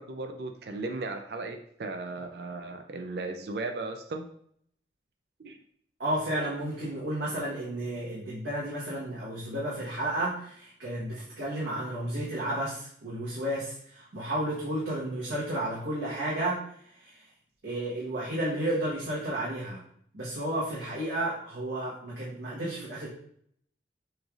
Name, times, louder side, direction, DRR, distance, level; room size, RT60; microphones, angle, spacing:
voice 1, 0.0-4.3 5.4-5.6 12.1-12.2, right 3 dB, 65° right, 5 dB, 0.4 m, -36 dB
voice 2, 6.0-17.3 17.6-19.8 20.1-23.1, right 1 dB, 90° right, -7 dB, 1.1 m, -32 dB
6.2 x 3.3 x 2.4 m, 0.65 s
head